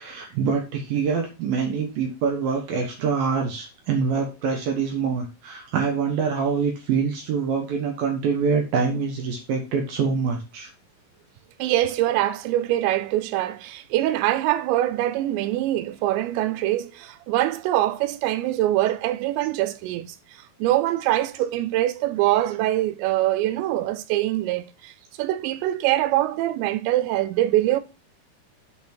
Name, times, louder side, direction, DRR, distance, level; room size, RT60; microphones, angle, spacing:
voice 1, 0.0-10.7, right 5 dB, 65° right, 2.6 m, -25 dB
voice 2, 11.6-20.2 20.6-24.9 25.2-27.8, right 14 dB, 90° right, 2.9 m, -23 dB
8.7 x 4.3 x 4.4 m
omnidirectional pair, 5.0 m